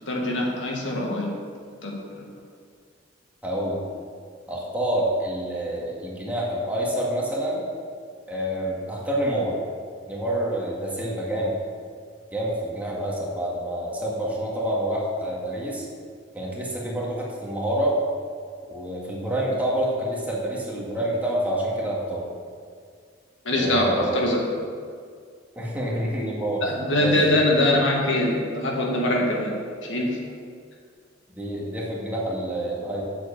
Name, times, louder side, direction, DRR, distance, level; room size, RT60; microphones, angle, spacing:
voice 1, 0.1-1.3 1.8-1.9 23.5-24.6 26.6-29.5 29.8-30.2, left 1 dB, 80° left, -1 dB, 2.0 m, -23 dB
voice 2, 3.4-3.8 4.5-7.6 8.3-9.5 10.1-11.5 12.3-15.9 16.3-18.0 18.7-22.3 23.6-24.2 25.6-26.6 27.0-27.2 31.3-33.0, right 1 dB, 10° right, -5 dB, 2.1 m, -27 dB
7.8 x 7.5 x 7.0 m, 2.1 s
head